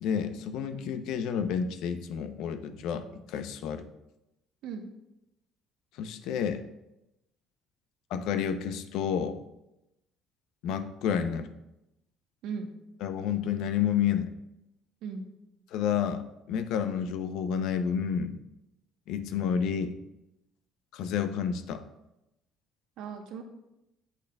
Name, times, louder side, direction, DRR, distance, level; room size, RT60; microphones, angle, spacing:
voice 1, 0.0-3.9 6.0-6.6 8.1-9.4 10.6-11.5 13.0-14.3 15.7-18.4 19.1-19.9 20.9-21.8, left 8 dB, 75° left, 9 dB, 0.6 m, -30 dB
voice 2, 23.0-23.4, right 5 dB, 75° right, 5 dB, 1.0 m, -37 dB
8.4 x 8.3 x 2.3 m, 0.90 s
cardioid pair, 115°, 0 cm